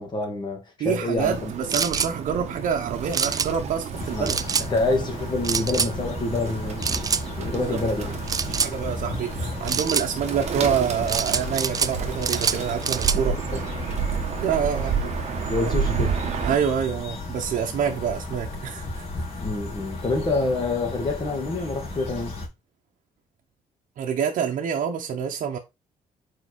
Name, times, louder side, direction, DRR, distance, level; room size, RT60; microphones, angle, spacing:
voice 1, 0.0-1.5 4.1-4.3 4.7-8.2 13.3-13.6 15.5-16.2 19.4-22.4, left 2 dB, 30° left, 2.2 m, -27 dB
voice 2, 0.8-4.4 7.5-7.8 8.5-13.4 14.4-14.9 16.4-19.0 24.0-25.6, right 7 dB, 70° right, 0.9 m, -27 dB
Bird, 1.2-16.6, right 6 dB, 50° right, 1.3 m, -31 dB
sound 1, 1.7-2.1 3.1-3.5 4.3-4.7 5.4-5.9 6.8-7.2 8.3-8.7 9.7-10.1 11.1-11.9 12.2-13.2, right 6 dB, 25° right, 0.4 m, -25 dB
sound 2, 3.9-22.5, left 2 dB, 45° left, 2.6 m, -35 dB
4.8 x 4.5 x 4.6 m
cardioid pair, 145°, 14 cm